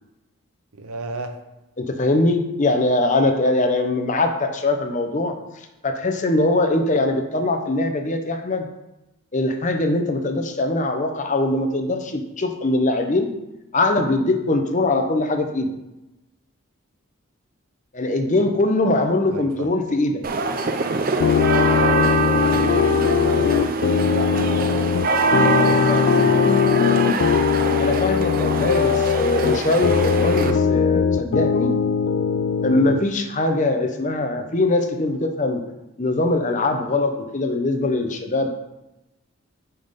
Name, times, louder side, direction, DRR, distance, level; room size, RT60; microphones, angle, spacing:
voice 1, 0.7-1.4 19.3-19.7 21.7-23.6 24.0-24.7 25.4-27.0, right 3 dB, 90° right, 7 dB, 0.8 m, -34 dB
voice 2, 1.8-5.4 5.8-8.7 9.3-13.3 13.7-15.7 17.9-20.2 25.9-26.0 27.8-31.7 32.6-35.6 36.0-38.5, left 2 dB, 35° left, 5 dB, 0.7 m, -22 dB
sound 1, 20.2-30.5, right 3 dB, 40° right, 0.5 m, -23 dB
sound 2, 21.2-33.0, left 7 dB, 60° left, 0.3 m, -20 dB
5.8 x 5.5 x 5.1 m, 0.97 s
head